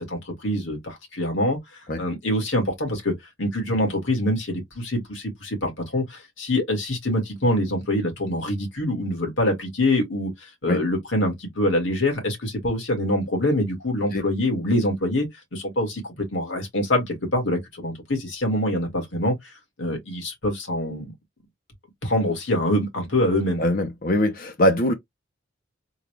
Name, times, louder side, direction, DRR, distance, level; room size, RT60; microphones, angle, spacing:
voice 1, 0.0-1.6 2.0-19.4 19.8-21.1 22.0-23.6, left 1 dB, 75° left, 1.9 m, -25 dB
voice 2, 23.6-24.9, left 1 dB, 50° left, 0.7 m, -22 dB
3.7 x 2.3 x 3.1 m
head